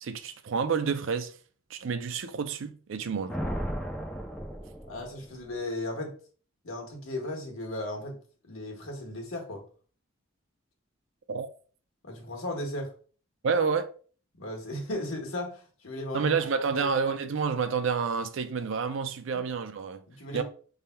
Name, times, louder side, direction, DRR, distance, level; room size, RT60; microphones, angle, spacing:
voice 1, 0.0-1.3 1.7-3.4 11.3-11.5 13.4-13.9 16.1-20.0 20.3-20.4, right 5 dB, 65° right, 0.4 m, -29 dB
Thunder, 3.3-5.5, equal, 5° left, 0.4 m, -35 dB
voice 2, 4.9-6.1 6.6-8.2 8.5-9.6 12.0-12.9 14.4-16.3 16.7-16.9 19.3-19.4 20.1-20.4, left 1 dB, 75° left, 1.3 m, -36 dB
5.5 x 3.4 x 2.2 m
head